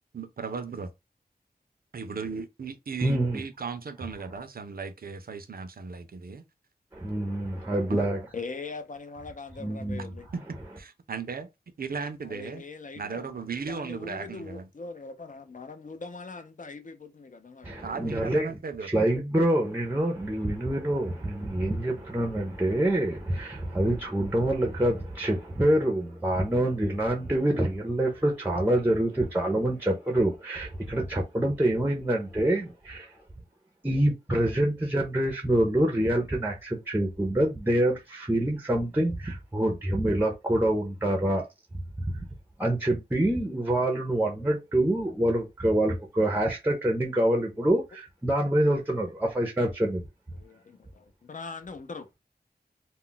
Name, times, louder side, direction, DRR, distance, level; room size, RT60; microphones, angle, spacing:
voice 1, 0.1-0.9 1.9-6.4 7.9-8.1 10.3-10.4 10.8-11.5 11.8-12.6 12.9-14.7 17.8-18.9, right 5 dB, 65° right, 0.5 m, -36 dB
voice 2, 3.0-3.4 6.9-8.2 9.6-10.1 17.6-18.5 18.8-33.1 33.8-41.5 42.1-42.2 42.6-50.0, right 1 dB, 10° right, 0.5 m, -26 dB
voice 3, 8.3-10.3 12.2-13.4 13.7-17.8 50.3-52.1, left 4 dB, 50° left, 0.5 m, -41 dB
2.3 x 2.1 x 3.7 m
wide cardioid pair, 80°, 17 cm